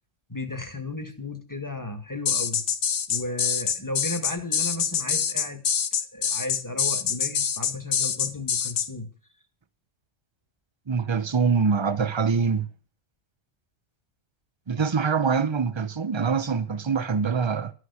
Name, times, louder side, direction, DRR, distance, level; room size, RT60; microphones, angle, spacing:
voice 1, 0.3-2.6 3.1-5.6 6.1-9.1, left 2 dB, 15° left, 1.7 m, -34 dB
sound 1, 2.3-8.9, left 7 dB, 85° left, 1.3 m, -25 dB
voice 2, 10.9-12.7 14.7-17.7, right 5 dB, 30° right, 0.7 m, -24 dB
12.5 x 6.7 x 8.1 m
omnidirectional pair, 1.2 m